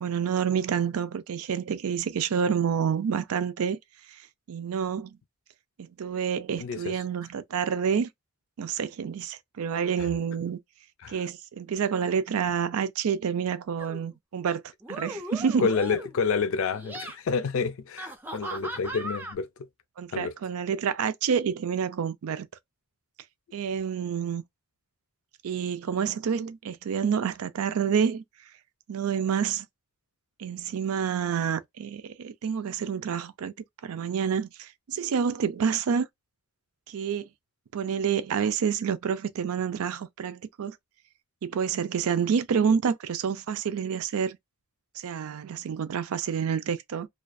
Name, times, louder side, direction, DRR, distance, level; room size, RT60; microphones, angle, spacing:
voice 1, 0.0-3.8 4.5-5.2 5.8-8.1 8.6-10.6 11.1-14.6 14.9-15.7 20.0-22.5 23.5-24.4 25.4-28.2 28.9-29.7 30.4-33.5 33.8-36.1 36.9-37.3 37.7-40.8 41.4-44.4 45.0-47.1, right 7 dB, 75° right, 0.4 m, -28 dB
voice 2, 6.6-7.0 10.0-10.1 11.0-11.2 15.6-19.5 20.1-20.3, left 5 dB, 65° left, 0.4 m, -29 dB
sound 1, 13.8-14.1 14.8-16.2 16.7-17.2 18.0-19.3, right 1 dB, 10° right, 0.3 m, -38 dB
2.4 x 2.2 x 2.2 m
head